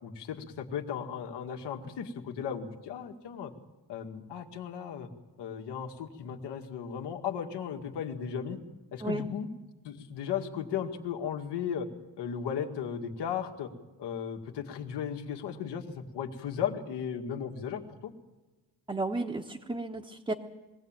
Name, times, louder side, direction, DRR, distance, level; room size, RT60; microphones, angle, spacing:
voice 1, 0.0-3.5 3.9-5.1 5.4-8.6 8.9-9.5 9.8-11.9 12.2-13.7 14.0-18.1, left 8 dB, 75° left, 4 dB, 2.2 m, -36 dB
voice 2, 18.9-20.3, right 2 dB, 10° right, 0 dB, 1.0 m, -33 dB
22.0 x 16.5 x 9.0 m, 1.2 s
cardioid pair, 145°, 42 cm